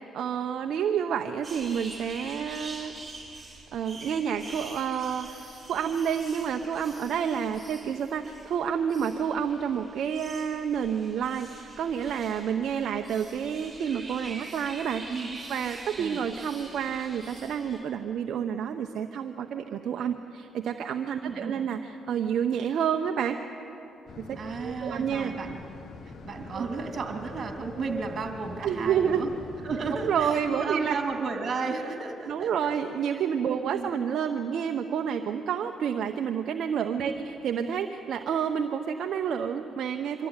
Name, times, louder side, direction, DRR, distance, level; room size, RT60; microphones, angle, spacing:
voice 1, 0.1-2.9 3.7-5.4 5.7-15.0 15.5-23.4 24.2-25.3 26.5-26.7 28.6-29.2 30.0-31.0 32.3-40.3, right 8 dB, 70° right, 5 dB, 0.8 m, -29 dB
sound 1, 1.4-17.8, right 2 dB, 20° right, 6.6 m, -45 dB
voice 2, 15.1-15.4 16.0-16.2 21.2-21.6 24.3-25.6 26.2-29.3 29.6-32.7 33.5-33.9 37.0-37.3, right 4 dB, 50° right, 3 dB, 3.1 m, -33 dB
sound 2, 24.1-30.2, left 4 dB, 60° left, 1.3 m, -44 dB
23.5 x 14.0 x 9.7 m, 2.9 s
cardioid pair, 90°, 0 cm